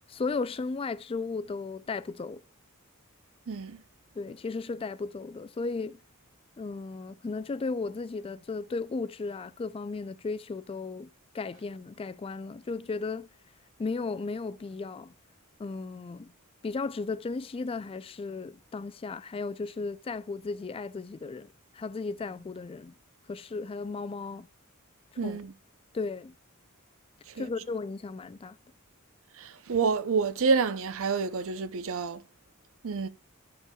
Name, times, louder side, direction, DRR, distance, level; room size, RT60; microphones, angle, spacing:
voice 1, 0.1-2.4 4.2-6.0 6.6-11.1 11.3-13.3 13.8-15.1 15.6-16.3 16.6-21.5 21.7-22.9 23.3-24.5 25.2-25.4 25.9-26.3 27.3-28.6, left 4 dB, 25° left, 0.3 m, -35 dB
voice 2, 3.5-3.8 25.2-25.5 27.4-27.5 29.4-32.2 32.8-33.1, right 5 dB, 65° right, 0.6 m, -28 dB
13.5 x 5.4 x 2.3 m
head